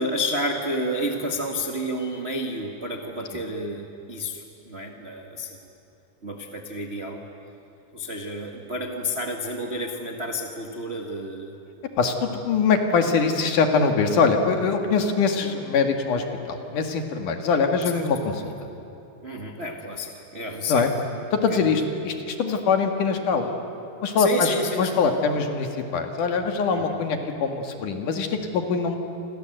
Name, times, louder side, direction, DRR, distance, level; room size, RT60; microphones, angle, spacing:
voice 1, 0.0-5.7 6.2-7.2 7.9-11.5 17.8-18.0 19.2-20.9 21.5-21.7 24.1-25.0 26.7-27.0, equal, 80° right, 2 dB, 0.5 m, -30 dB
voice 2, 12.0-18.5 20.7-20.9 21.3-23.5 24.0-29.0, left 5 dB, 60° left, 5 dB, 3.1 m, -23 dB
28.5 x 26.0 x 8.0 m, 2.8 s
omnidirectional pair, 4.5 m